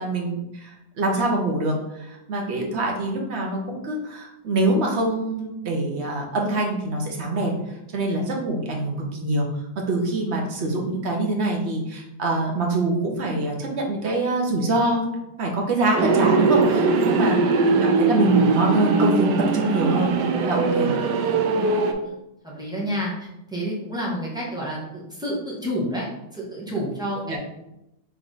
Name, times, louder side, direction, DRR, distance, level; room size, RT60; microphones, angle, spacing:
voice 1, 0.0-7.6 7.9-9.5 9.8-17.4 17.7-19.3 19.5-21.0 27.3-27.4, right 2 dB, 55° right, 0 dB, 0.7 m, -24 dB
sound 1, 16.0-21.9, right 4 dB, 75° right, 1.0 m, -21 dB
voice 2, 17.3-17.8 22.0-22.2 22.4-26.1 26.3-27.4, equal, 5° right, -6 dB, 1.0 m, -30 dB
4.0 x 3.4 x 3.9 m, 0.87 s
omnidirectional pair, 2.2 m